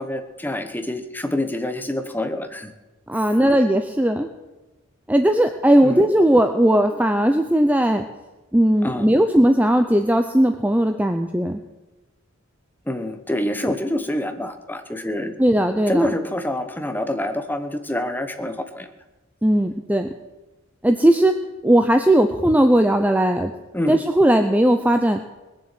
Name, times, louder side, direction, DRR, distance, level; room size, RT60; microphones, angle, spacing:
voice 1, 0.0-2.7 3.1-3.3 5.8-6.1 8.8-9.1 12.9-15.3 15.9-18.9 23.7-24.0, left 1 dB, 10° left, 7 dB, 1.0 m, -26 dB
voice 2, 3.1-4.3 5.1-8.0 8.5-11.6 15.4-16.1 19.4-20.1 20.8-21.3 21.6-23.5 23.9-25.2, right 1 dB, 5° right, 6 dB, 0.6 m, -17 dB
20.0 x 7.3 x 7.7 m, 1.1 s
head